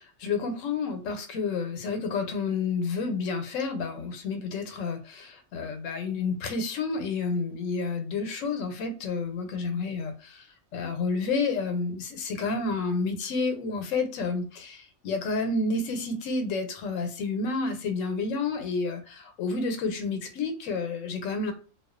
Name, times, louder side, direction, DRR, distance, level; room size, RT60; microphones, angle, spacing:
voice 1, 0.0-10.5 10.7-21.5, left 4 dB, 85° left, 6 dB, 0.9 m, -30 dB
2.3 x 2.2 x 2.4 m, 0.38 s
omnidirectional pair, 1.3 m